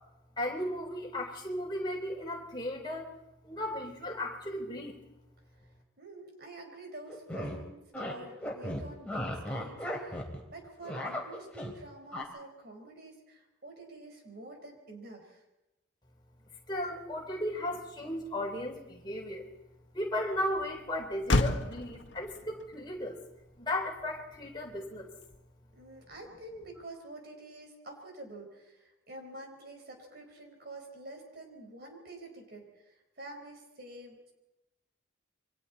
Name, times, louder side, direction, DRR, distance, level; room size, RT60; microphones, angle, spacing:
voice 1, 0.4-3.1 3.5-4.9 16.7-18.8 19.0-19.4 19.9-23.1 23.6-25.1, left 1 dB, 20° left, 0 dB, 3.9 m, -35 dB
voice 2, 6.0-15.4 25.8-34.3, right 2 dB, 50° right, 3 dB, 4.7 m, -48 dB
sound 1, 7.1-7.6 7.9-8.2 8.4-10.4 10.7-11.7 12.1-12.2, left 1 dB, 5° left, 3.9 m, -36 dB
Motor vehicle (road), 17.1-25.8, left 2 dB, 65° left, 1.5 m, -36 dB
28.5 x 24.5 x 4.3 m, 0.96 s
head